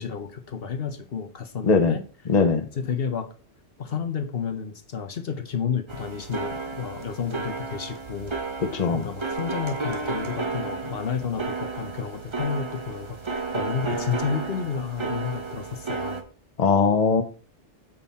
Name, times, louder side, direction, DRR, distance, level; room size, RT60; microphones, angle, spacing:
voice 1, 0.0-2.0 2.7-3.3 3.8-8.3 8.9-16.2, left 6 dB, 65° left, 1.1 m, -31 dB
voice 2, 1.6-1.9 2.3-2.7 8.6-9.1 16.6-17.2, left 4 dB, 40° left, 0.9 m, -20 dB
sound 1, 5.9-16.2, right 3 dB, 30° right, 0.9 m, -32 dB
7.3 x 5.4 x 4.2 m
omnidirectional pair, 1.1 m